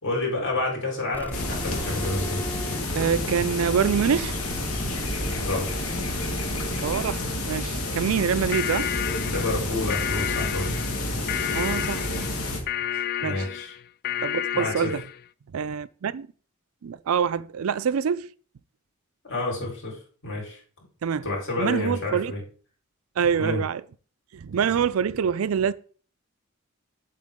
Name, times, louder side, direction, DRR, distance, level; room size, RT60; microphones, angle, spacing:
voice 1, 0.0-2.4 5.4-5.9 9.2-10.8 13.2-13.7 14.5-14.9 19.2-20.0 20.2-20.6 21.2-22.4 23.4-23.6, left 2 dB, 60° left, 4.2 m, -29 dB
sound 1, 1.1-7.0, equal, 10° left, 0.6 m, -38 dB
sound 2, 1.3-12.6, left 2 dB, 85° left, 2.1 m, -29 dB
voice 2, 2.9-4.4 4.8-4.9 6.8-8.9 11.5-12.5 13.2-13.4 14.2-15.0 15.5-16.3 16.8-18.3 21.0-21.3 21.6-22.3 23.2-23.8 24.3-25.7, right 7 dB, 80° right, 0.4 m, -26 dB
sound 3, 8.5-15.2, left 11 dB, 45° left, 0.3 m, -31 dB
7.9 x 7.6 x 3.7 m
head